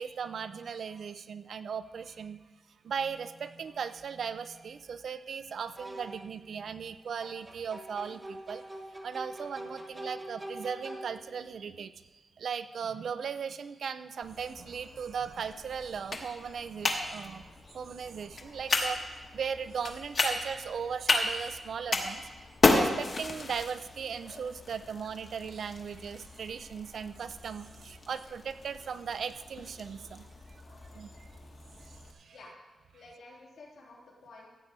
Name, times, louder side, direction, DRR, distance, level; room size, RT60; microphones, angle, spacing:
voice 1, 0.0-2.4 2.8-8.6 9.0-11.9 12.4-17.5 17.7-19.0 19.3-22.2 22.7-30.3 30.9-31.1 31.8-32.3, right 6 dB, 60° right, 12 dB, 0.5 m, -37 dB
sound 1, 3.6-3.8 5.7-6.3 7.2-11.5, right 1 dB, 15° right, 1.2 m, -44 dB
sound 2, 14.2-32.1, left 3 dB, 35° left, 1.1 m, -34 dB
voice 2, 32.9-34.5, left 2 dB, 90° left, -4 dB, 3.1 m, -51 dB
14.5 x 8.4 x 4.0 m, 1.2 s
wide cardioid pair, 180°, 0 cm